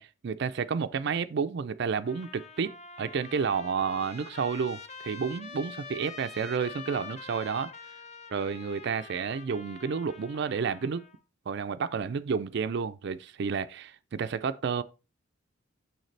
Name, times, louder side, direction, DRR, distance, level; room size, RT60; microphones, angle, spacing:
voice 1, 0.0-7.7 8.3-11.0 11.5-14.8, right 6 dB, 55° right, 0.4 m, -31 dB
Trumpet, 2.0-11.2, left 5 dB, 35° left, 0.7 m, -46 dB
6.5 x 6.5 x 3.2 m
head